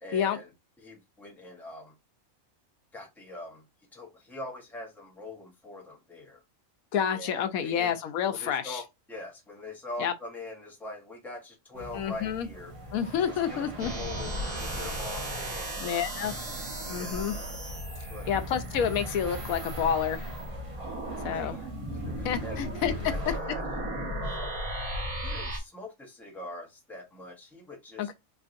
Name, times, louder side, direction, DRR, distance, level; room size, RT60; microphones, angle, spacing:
voice 1, 0.0-0.5 0.8-1.9 2.9-3.6 3.9-6.4 7.1-8.0 8.3-12.7 13.2-16.0 16.9-17.2 18.1-18.3 21.3-21.6 21.9-22.6 23.0-23.6 24.2-24.6 25.2-28.1, left 2 dB, ahead, 0.8 m, -43 dB
voice 2, 6.9-8.8 10.0-10.1 11.9-12.5 12.9-13.9 15.8-16.4 16.9-17.3 18.3-20.3 21.2-21.6 22.2-22.9 23.3-23.4 28.0-28.1, left 8 dB, 90° left, 1.1 m, -29 dB
sound 1, 11.7-23.4, equal, 25° right, 0.9 m, -42 dB
sound 2, 13.8-25.6, right 1 dB, 80° right, 1.7 m, -36 dB
4.5 x 3.1 x 2.5 m
omnidirectional pair, 1.5 m